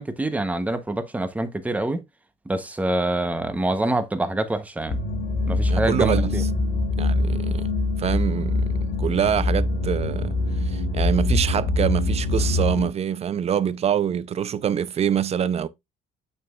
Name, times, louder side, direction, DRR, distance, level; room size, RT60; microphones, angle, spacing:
voice 1, 0.0-2.0 2.5-5.0 5.5-6.4, right 1 dB, 10° right, 0.9 m, -25 dB
sound 1, 4.9-12.9, left 2 dB, 60° left, 2.0 m, -24 dB
voice 2, 5.7-6.4 7.0-7.7 8.0-10.4 10.7-15.7, right 8 dB, 40° right, 0.5 m, -25 dB
6.7 x 6.7 x 2.4 m
cardioid pair, 110°, 17 cm